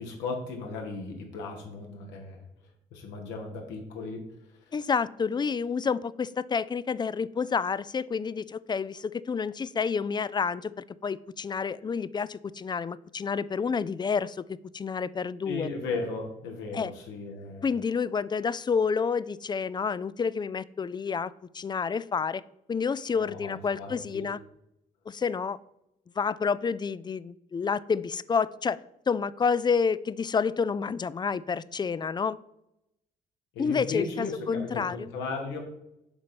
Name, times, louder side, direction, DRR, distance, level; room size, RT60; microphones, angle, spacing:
voice 1, 0.0-2.4 2.9-4.3 4.7-4.8 15.4-17.7 23.1-24.3 33.5-35.6, left 3 dB, 85° left, 2 dB, 1.6 m, -36 dB
voice 2, 4.7-15.7 16.7-16.9 17.6-22.4 22.7-24.4 25.1-25.6 26.2-28.8 29.1-32.4 33.6-35.0, left 5 dB, 25° left, 18 dB, 0.3 m, -29 dB
7.0 x 4.2 x 5.2 m, 0.85 s
supercardioid pair, 65°, 18 cm